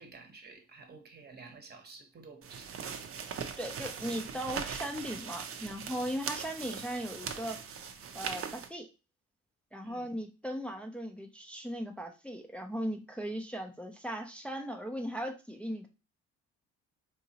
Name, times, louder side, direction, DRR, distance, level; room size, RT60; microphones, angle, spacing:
voice 1, 0.0-2.9 9.8-10.1, right 4 dB, 35° right, 0.9 m, -52 dB
sound 1, 2.4-8.7, right 7 dB, 50° right, 0.5 m, -40 dB
voice 2, 3.6-7.6 8.1-8.9 9.7-15.9, equal, 5° left, 0.4 m, -38 dB
3.9 x 2.8 x 2.8 m
cardioid pair, 90°, 30 cm